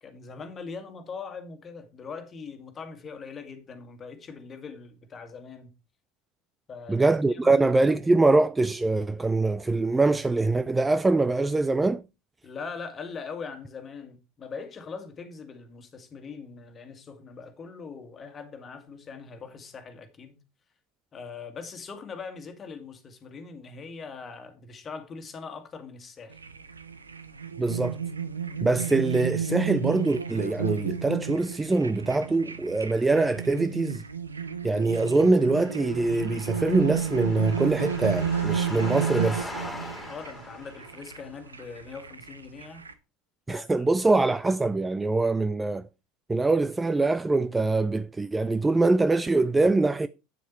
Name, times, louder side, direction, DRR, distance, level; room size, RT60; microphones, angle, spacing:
voice 1, 0.0-5.7 6.7-7.7 8.1-8.3 12.4-20.4 21.1-26.4 40.0-42.8 43.5-44.2, left 5 dB, 30° left, 2.0 m, -41 dB
voice 2, 6.9-12.0 27.6-28.0 28.6-34.0 34.6-39.5 43.5-45.9 46.3-50.1, right 3 dB, 15° right, 0.5 m, -23 dB
sound 1, 26.3-42.9, right 7 dB, 90° right, 0.8 m, -32 dB
sound 2, 35.1-41.3, left 1 dB, 10° left, 3.7 m, -41 dB
8.6 x 7.3 x 4.4 m
figure-of-eight pair, 75°, 0 cm